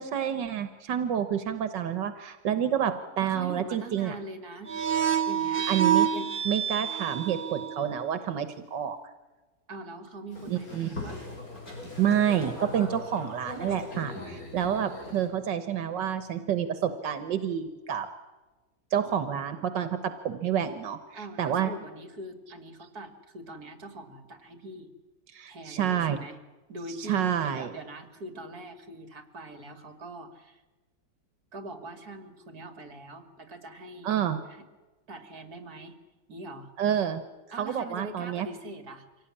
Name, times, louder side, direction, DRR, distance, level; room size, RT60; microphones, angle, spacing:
voice 1, 0.0-4.2 5.7-6.1 6.5-9.0 10.5-10.9 12.0-18.1 18.9-20.0 20.2-21.0 21.4-21.7 25.3-26.2 27.1-27.7 34.0-34.4 36.8-37.2 37.6-38.5, right 9 dB, 90° right, 10 dB, 1.9 m, -28 dB
voice 2, 3.2-4.8 5.2-5.7 6.1-6.4 9.7-11.3 21.1-24.9 25.5-26.4 26.7-30.6 31.5-34.1 34.5-34.6 35.1-36.0 36.3-36.7 37.5-39.1, right 1 dB, 60° right, 8 dB, 2.9 m, -42 dB
sound 1, 4.7-7.9, right 9 dB, 35° right, 1.2 m, -27 dB
Boat Water vehicle, 10.3-15.3, left 2 dB, 50° left, 6.7 m, -40 dB
25.0 x 17.5 x 9.9 m, 1.2 s
omnidirectional pair, 1.9 m